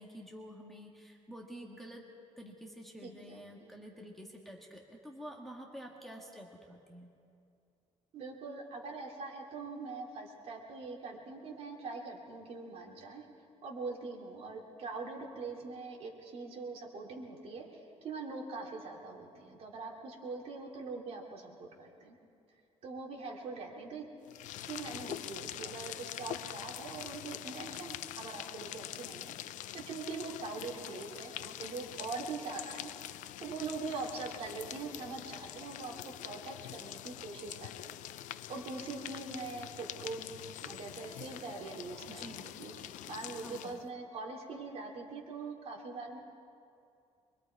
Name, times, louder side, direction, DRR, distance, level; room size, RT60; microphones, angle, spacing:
voice 1, 0.0-2.0 2.4-7.1 42.1-42.5 43.3-43.8, equal, ahead, -2 dB, 1.6 m, -49 dB
voice 2, 3.0-3.7 8.1-13.2 13.6-22.1 22.8-24.0 24.6-32.9 33.4-35.9 36.2-38.0 38.5-40.3 40.6-46.2, right 4 dB, 50° right, -1 dB, 3.0 m, -43 dB
sound 1, 24.2-43.9, left 13 dB, 70° left, 0.5 m, -45 dB
25.0 x 23.0 x 4.7 m, 2.5 s
cardioid pair, 160°, 13 cm